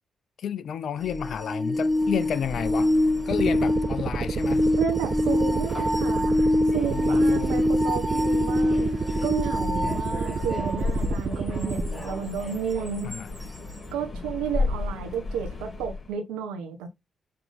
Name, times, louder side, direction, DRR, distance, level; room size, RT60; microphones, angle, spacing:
voice 1, 0.4-2.9 3.3-4.7 6.9-7.6 9.8-10.2 13.0-13.3, left 8 dB, 65° left, 0.5 m, -31 dB
sound 1, 1.0-10.8 13.1-13.2, left 1 dB, ahead, 0.6 m, -25 dB
Subway metro underground, 1.8-16.1, left 3 dB, 40° left, 4.0 m, -35 dB
sound 2, 3.3-11.9, right 5 dB, 50° right, 0.4 m, -30 dB
voice 2, 4.8-13.1 13.9-16.9, right 7 dB, 80° right, 1.4 m, -32 dB
6.7 x 3.8 x 3.9 m
hypercardioid pair, 40°, 0 cm